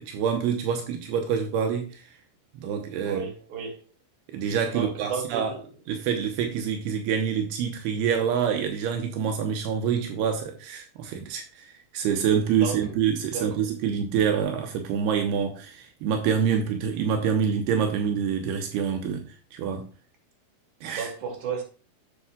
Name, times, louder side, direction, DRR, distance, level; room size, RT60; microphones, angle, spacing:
voice 1, 0.0-2.0 2.6-3.2 4.3-5.5 5.9-19.2 19.5-19.9 20.8-21.1, right 7 dB, 85° right, 2.9 m, -26 dB
voice 2, 3.0-3.8 4.7-5.6 12.5-13.0 13.3-13.6 20.9-21.6, right 6 dB, 55° right, 3.4 m, -33 dB
10.0 x 7.3 x 2.3 m
omnidirectional pair, 4.6 m